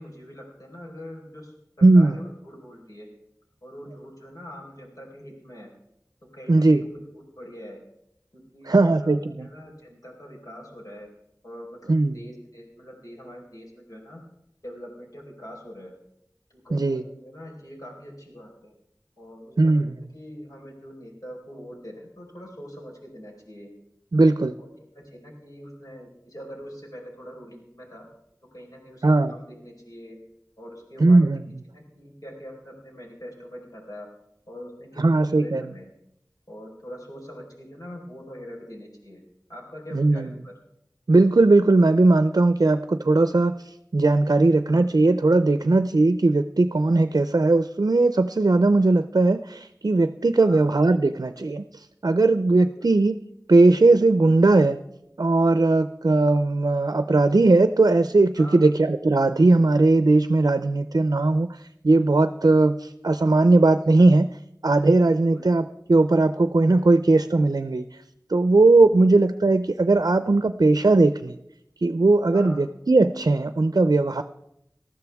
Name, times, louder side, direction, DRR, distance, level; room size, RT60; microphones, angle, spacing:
voice 1, 0.0-3.1 3.6-5.7 6.3-7.8 8.3-9.1 9.4-11.1 11.4-14.2 14.6-15.9 16.5-18.7 19.2-19.7 20.0-23.7 24.6-24.7 24.9-28.1 28.5-30.2 30.6-31.2 31.7-34.1 34.5-35.9 36.5-39.2 39.5-40.5 50.4-50.7 52.7-52.9 58.4-58.7 65.3-65.4 68.9-69.1 72.3-72.6, equal, 65° left, -1 dB, 4.4 m, -43 dB
voice 2, 1.8-2.1 6.5-6.8 8.7-9.2 11.9-12.1 16.7-17.0 19.6-19.9 24.1-24.5 29.0-29.3 31.0-31.4 35.0-35.6 39.9-40.3 41.1-43.5 43.9-51.6 52.0-53.2 53.5-54.8 55.2-61.6 61.8-64.3 64.6-67.8 68.3-71.4 71.8-74.2, right 2 dB, 70° right, 10 dB, 0.5 m, -18 dB
19.5 x 13.5 x 3.5 m, 0.79 s
wide cardioid pair, 45°, 7 cm